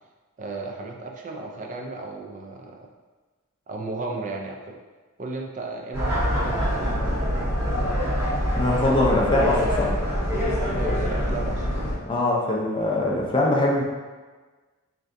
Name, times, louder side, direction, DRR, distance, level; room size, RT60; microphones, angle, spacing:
voice 1, 0.4-2.8 3.7-4.8 5.2-7.0 10.7-11.7, right 3 dB, 35° right, 1 dB, 0.4 m, -34 dB
sound 1, 5.9-11.9, equal, 15° right, 1.4 m, -25 dB
voice 2, 8.5-10.0 12.1-13.8, left 2 dB, 25° left, -3 dB, 0.5 m, -22 dB
3.3 x 2.6 x 2.5 m, 1.3 s
head